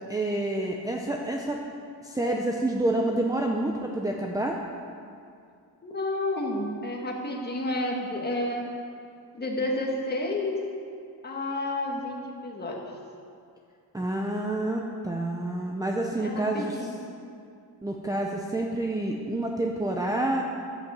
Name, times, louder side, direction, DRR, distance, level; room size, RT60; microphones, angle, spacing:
voice 1, 0.1-1.6 2.0-4.6 13.9-16.9 17.8-20.4, right 1 dB, 10° right, 0 dB, 0.6 m, -28 dB
voice 2, 5.8-8.7 9.3-10.6 11.2-12.8 16.2-17.0, left 1 dB, 25° left, 0 dB, 1.6 m, -30 dB
11.5 x 8.0 x 7.4 m, 2.4 s
wide cardioid pair, 175°, 38 cm